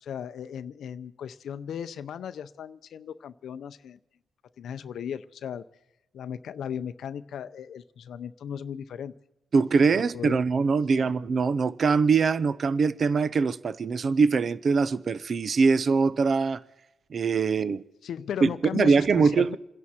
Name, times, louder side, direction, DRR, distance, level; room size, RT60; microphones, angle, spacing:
voice 1, 0.0-4.0 4.6-5.6 6.1-9.1 9.9-10.4 11.0-11.1 18.0-19.6, left 8 dB, 70° left, 0.6 m, -36 dB
voice 2, 9.5-16.6 17.1-17.8 18.4-19.6, right 5 dB, 45° right, 0.6 m, -23 dB
29.0 x 11.0 x 4.3 m
cardioid pair, 115°, 0 cm